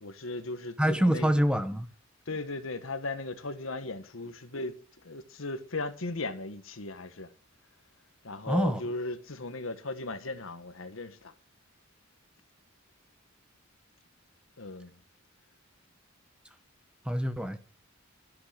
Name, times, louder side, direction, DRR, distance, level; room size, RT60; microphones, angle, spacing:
voice 1, 0.0-1.3 2.3-4.8 5.0-7.3 8.2-11.3 14.6-15.0, left 2 dB, 70° left, 1.5 m, -37 dB
voice 2, 0.8-1.9 8.5-8.8 17.0-17.6, equal, 5° right, 0.8 m, -26 dB
13.5 x 11.0 x 5.0 m
head